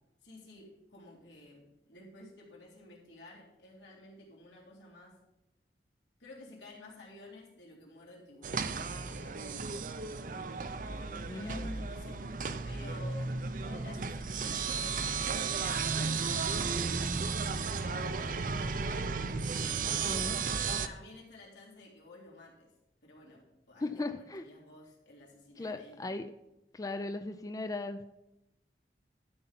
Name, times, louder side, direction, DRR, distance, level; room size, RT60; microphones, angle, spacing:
voice 1, 0.2-5.2 6.2-9.6 10.9-19.1 19.6-20.2 20.8-22.7 23.0-26.1, left 2 dB, 90° left, -4 dB, 3.5 m, -53 dB
sound 1, 8.4-20.9, right 5 dB, 50° right, 0.5 m, -34 dB
voice 2, 11.3-11.9 20.0-20.4 23.8-24.5 25.6-26.3 26.7-28.1, left 2 dB, 20° left, 8 dB, 0.4 m, -37 dB
12.0 x 5.5 x 5.8 m, 0.89 s
head